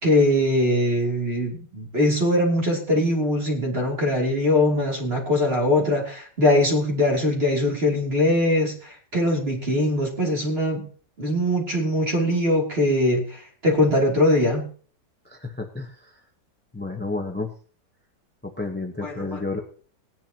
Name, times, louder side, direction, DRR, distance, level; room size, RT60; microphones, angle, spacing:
voice 1, 0.0-10.9 11.2-14.7 19.0-19.4, left 1 dB, 35° right, -1 dB, 3.3 m, -22 dB
voice 2, 15.2-16.2 16.7-17.5 18.4-19.6, left 3 dB, 10° left, 4 dB, 0.6 m, -31 dB
19.5 x 10.5 x 2.9 m, 0.43 s
omnidirectional pair, 1.9 m